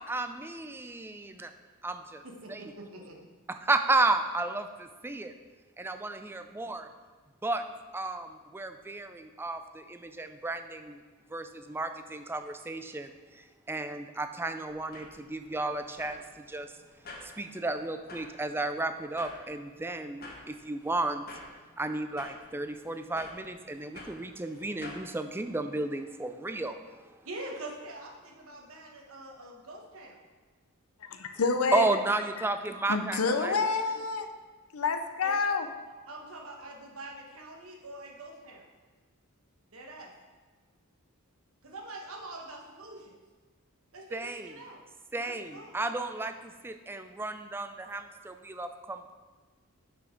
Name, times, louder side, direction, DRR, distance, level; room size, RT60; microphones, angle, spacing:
voice 1, 0.0-1.5 1.8-2.2 2.5-2.6 3.5-5.3 5.8-6.8 7.4-7.6 7.9-11.0 11.3-13.1 13.7-16.7 17.2-21.2 21.8-26.8 31.7-33.5 44.1-44.5 45.1-49.1, right 2 dB, 10° right, 8 dB, 0.3 m, -33 dB
voice 2, 2.2-3.3 27.2-30.2 35.2-35.3 36.1-38.7 39.7-40.1 41.6-43.1 43.9-44.8 45.2-45.8, right 2 dB, 70° right, 1 dB, 1.2 m, -44 dB
sound 1, 14.7-25.1, left 2 dB, 45° left, 1.1 m, -50 dB
voice 3, 31.0-31.9 32.9-34.3 34.7-35.7, left 4 dB, 75° left, 7 dB, 0.6 m, -28 dB
6.2 x 5.7 x 5.2 m, 1.3 s
head